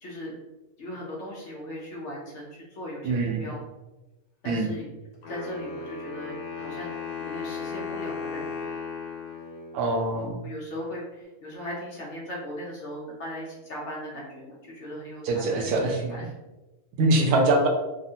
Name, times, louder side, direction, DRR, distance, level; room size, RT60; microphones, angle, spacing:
voice 1, 0.0-0.3 0.8-3.6 4.4-4.9 5.3-6.9 7.2-8.7 10.4-16.3, equal, 60° left, -3 dB, 0.9 m, -38 dB
voice 2, 3.0-3.5 4.4-4.7 9.7-10.4 15.2-16.1 17.0-17.7, right 2 dB, 85° right, 1 dB, 1.1 m, -24 dB
Wind instrument woodwind instrument, 5.2-10.2, left 5 dB, 85° left, 1.2 m, -36 dB
3.4 x 2.1 x 2.7 m, 1.1 s
omnidirectional pair, 1.6 m